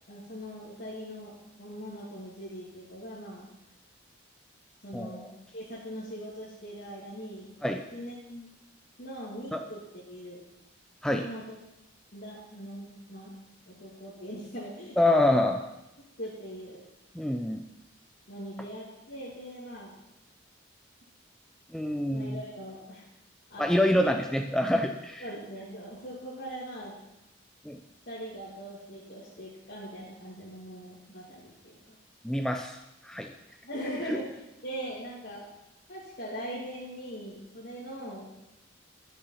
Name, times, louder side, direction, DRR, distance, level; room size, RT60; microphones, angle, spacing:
voice 1, 0.1-3.5 4.8-7.5 7.9-8.5 9.0-10.4 11.1-11.6 12.1-13.4 13.7-15.0 16.2-16.8 18.3-19.9 22.1-23.0 23.5-23.7 24.0-24.1 25.2-27.0 28.1-32.0 33.6-34.3 34.6-35.5 35.9-38.3, equal, 50° left, -9 dB, 2.5 m, -41 dB
voice 2, 4.9-5.3 7.6-7.8 9.5-9.6 11.0-11.3 15.0-15.6 17.1-17.6 21.7-22.4 23.6-25.2 27.6-27.8 32.2-32.8 33.0-33.3 34.1-34.2, left 1 dB, 5° left, 5 dB, 0.4 m, -26 dB
11.5 x 6.9 x 5.8 m, 0.93 s
head